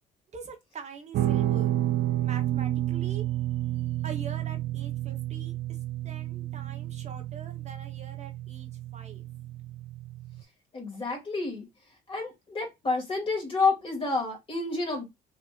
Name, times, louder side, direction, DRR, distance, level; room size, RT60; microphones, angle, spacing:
voice 1, 0.3-1.7 2.2-3.4 3.7-5.6 6.0-9.2, right 5 dB, 40° right, 1.1 m, -44 dB
Guitar, 1.1-10.4, right 13 dB, 65° right, 0.5 m, -30 dB
voice 2, 10.7-11.7 12.1-15.0, left 3 dB, 30° left, 2.2 m, -29 dB
5.8 x 2.8 x 2.5 m
cardioid pair, 110°, 17 cm